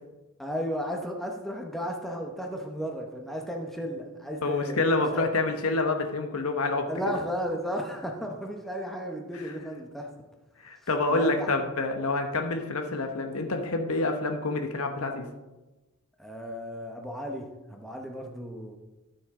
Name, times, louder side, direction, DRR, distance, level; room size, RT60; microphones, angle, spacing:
voice 1, 0.4-4.8 5.1-5.3 6.9-10.1 11.1-11.5 16.2-18.8, equal, ahead, 1 dB, 0.9 m, -34 dB
voice 2, 4.4-6.9 9.3-9.5 10.6-15.3, left 2 dB, 75° left, 5 dB, 1.0 m, -27 dB
13.0 x 5.8 x 3.7 m, 1.1 s
head